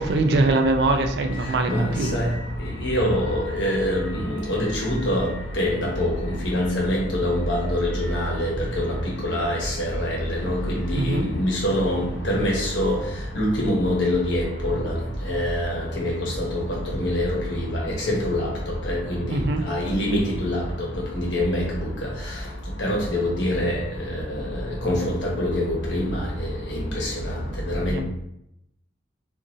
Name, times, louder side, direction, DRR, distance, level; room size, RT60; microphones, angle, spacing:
voice 1, 0.0-2.2 10.9-11.3 19.3-19.6 27.9-28.0, right 2 dB, 60° right, 5 dB, 0.3 m, -22 dB
voice 2, 1.7-2.3 2.8-5.3 5.6-6.1 6.4-8.9 9.2-13.0 13.3-14.9 15.3-16.5 17.0-18.5 18.9-19.4 19.7-20.6 21.1-21.6 22.8-23.8 24.1-24.2 24.8-27.3 27.7-28.0, left 1 dB, 80° left, -3 dB, 1.0 m, -24 dB
3.0 x 2.5 x 2.5 m, 0.80 s
head